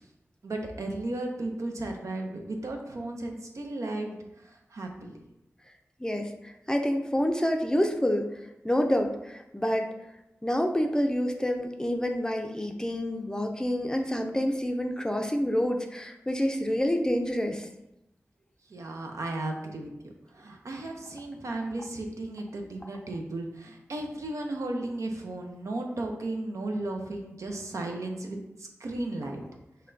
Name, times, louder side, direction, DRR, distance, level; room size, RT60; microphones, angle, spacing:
voice 1, 0.4-4.2 4.7-5.1 18.7-19.9 20.3-29.4, right 2 dB, 75° right, 2 dB, 0.5 m, -35 dB
voice 2, 6.0-8.3 8.6-9.9 10.4-17.7, equal, 15° left, 4 dB, 0.5 m, -28 dB
5.5 x 2.2 x 2.6 m, 0.89 s
cardioid pair, 40°, 5 cm